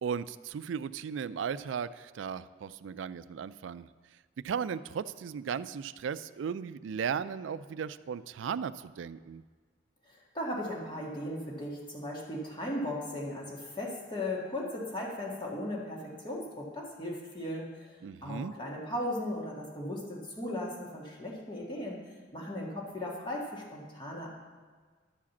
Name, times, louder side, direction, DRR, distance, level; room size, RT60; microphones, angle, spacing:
voice 1, 0.0-3.9 4.4-9.4 18.0-18.5, right 7 dB, 80° right, 15 dB, 0.3 m, -36 dB
voice 2, 10.1-22.0 22.3-24.3, left 1 dB, 25° left, -3 dB, 1.7 m, -37 dB
11.5 x 4.9 x 7.1 m, 1.5 s
head